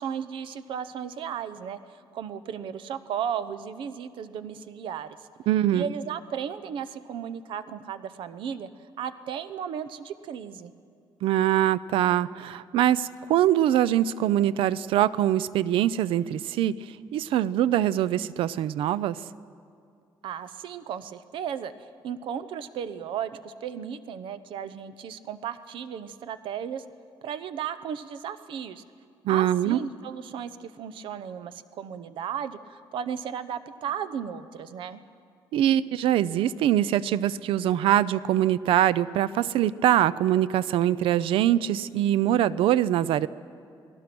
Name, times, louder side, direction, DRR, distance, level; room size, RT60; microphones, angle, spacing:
voice 1, 0.0-5.2 5.7-8.7 9.0-10.7 20.2-26.8 27.2-28.8 29.3-35.0, right 8 dB, 70° right, 12 dB, 0.9 m, -35 dB
voice 2, 5.5-5.9 11.2-19.2 29.2-29.8 35.5-43.3, right 12 dB, 90° right, 18 dB, 0.5 m, -23 dB
29.5 x 18.5 x 6.1 m, 2.4 s
cardioid pair, 150°, 9 cm